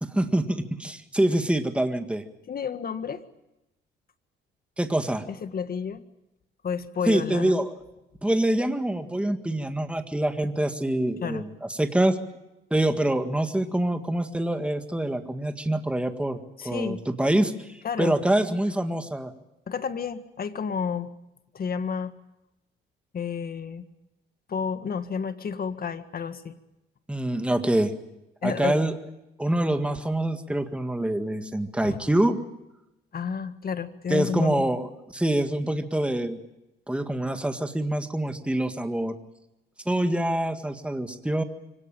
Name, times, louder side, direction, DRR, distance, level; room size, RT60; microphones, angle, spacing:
voice 1, 0.0-2.2 4.8-5.2 7.1-7.7 8.2-12.2 12.7-16.4 16.6-19.3 27.1-27.9 28.4-28.9 29.4-32.4 34.1-36.4 36.9-39.2 39.9-41.4, right 1 dB, 5° right, 7 dB, 1.8 m, -25 dB
voice 2, 2.5-3.2 5.3-6.0 6.6-7.6 11.2-11.4 16.6-17.0 17.8-18.2 19.7-21.1 21.5-22.1 23.1-23.9 24.5-26.6 28.4-28.8 31.8-32.1 33.1-34.7, left 6 dB, 50° left, 10 dB, 1.7 m, -31 dB
25.0 x 17.5 x 8.9 m, 0.92 s
cardioid pair, 90°, 20 cm